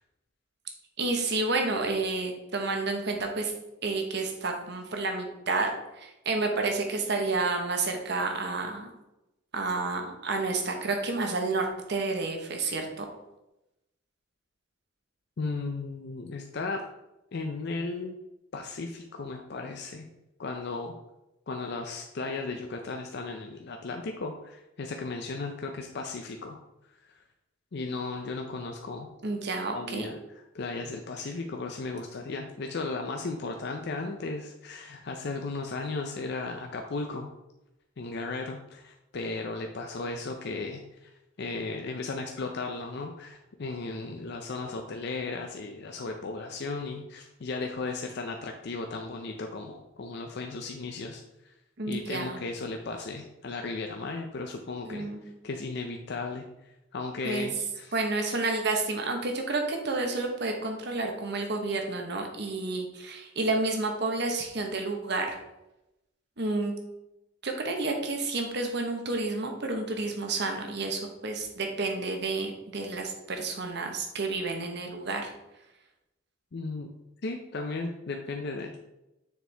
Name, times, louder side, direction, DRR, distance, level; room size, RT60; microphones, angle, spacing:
voice 1, 1.0-3.5 3.8-5.7 6.0-8.9 9.5-13.0 29.2-30.1 51.8-52.4 54.8-55.2 57.2-57.5 57.9-65.4 66.4-66.7 67.4-75.3, right 3 dB, 60° right, 3 dB, 1.1 m, -30 dB
voice 2, 15.4-16.8 17.3-18.2 18.5-20.1 20.4-20.9 21.5-26.6 27.0-27.1 27.7-29.1 29.7-37.3 38.0-41.1 41.4-51.5 51.9-57.9 76.5-76.9 77.2-78.8, left 3 dB, 55° left, 3 dB, 0.5 m, -35 dB
6.7 x 4.5 x 3.4 m, 0.92 s
head